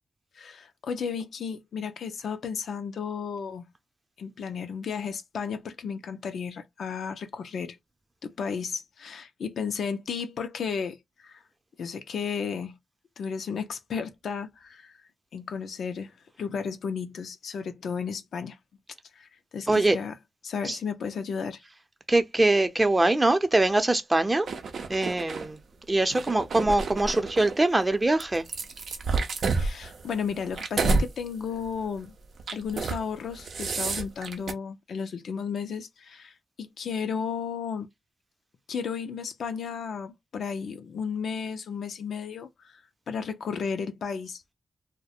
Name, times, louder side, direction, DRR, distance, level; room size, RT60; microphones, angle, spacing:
voice 1, 0.3-3.7 4.2-7.8 8.2-11.4 11.8-12.8 13.2-15.0 15.3-16.1 16.4-18.6 19.1-20.2 20.4-21.6 29.5-32.1 32.5-37.9 38.7-44.4, left 6 dB, 80° left, 0.4 m, -33 dB
voice 2, 22.1-24.5 24.9-25.6 25.9-28.4, right 2 dB, 30° right, 0.6 m, -23 dB
sound 1, 24.5-25.5 26.0-27.6 28.2-31.1 31.5-31.8 32.4-33.0 33.3-34.5, right 3 dB, 75° right, 0.5 m, -29 dB
2.3 x 2.1 x 2.7 m
cardioid pair, 50°, 0 cm